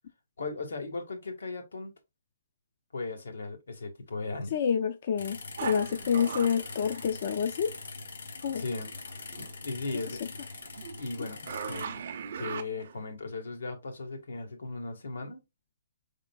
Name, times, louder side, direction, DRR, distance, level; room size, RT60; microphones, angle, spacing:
voice 1, 0.4-1.9 2.9-4.5 8.5-8.9 9.4-10.2 11.0-12.0 12.4-15.4, left 3 dB, 85° left, 1.4 m, -37 dB
voice 2, 4.5-7.7 8.4-8.6, left 7 dB, 40° left, 0.4 m, -28 dB
sound 1, 5.2-11.9, left 4 dB, 70° left, 0.8 m, -43 dB
sound 2, 5.6-7.8 8.4-9.6 10.0-13.1, right 7 dB, 50° right, 0.5 m, -40 dB
4.4 x 3.7 x 2.2 m
hypercardioid pair, 170°, 0 cm